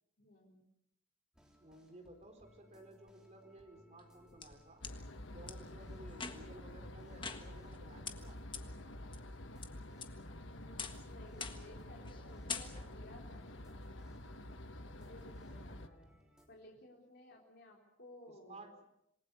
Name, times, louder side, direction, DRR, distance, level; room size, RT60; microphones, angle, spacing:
voice 1, 0.2-0.6 10.2-13.8 14.9-16.2 16.5-18.6, left 1 dB, 55° left, -1 dB, 3.8 m, -58 dB
sound 1, 1.3-16.5, equal, 5° right, 3.6 m, -65 dB
voice 2, 1.6-4.8 5.3-8.4 18.2-18.8, right 1 dB, 35° right, 5 dB, 4.3 m, -56 dB
sound 2, 4.0-4.9 5.5-5.6 6.1-6.6 7.2-7.8 8.1-8.2 8.5-8.6 9.1-9.7 10.0-10.4 10.8-11.1 11.4-11.7 12.0-12.2 12.5-13.1, left 6 dB, 25° left, 1.5 m, -44 dB
sound 3, 4.8-15.9, left 1 dB, 70° left, 1.3 m, -49 dB
27.0 x 20.5 x 6.8 m, 0.77 s
head